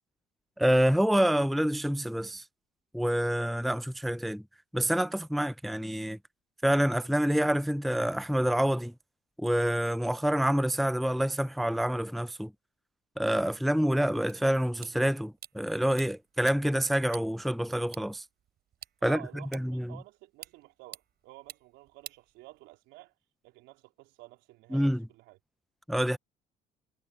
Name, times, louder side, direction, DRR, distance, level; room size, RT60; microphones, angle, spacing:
voice 1, 0.6-2.4 2.9-4.4 4.7-6.2 6.6-8.9 9.4-12.5 13.2-18.2 19.0-19.2 19.5-19.9 24.7-25.0 25.9-26.2, equal, ahead, 0.6 m, -27 dB
sound 1, 14.3-22.9, right 10 dB, 60° right, 6.4 m, -52 dB
voice 2, 19.0-23.1 23.4-25.4, right 21 dB, 75° right, 3.8 m, -51 dB
hypercardioid pair, 60°, 19 cm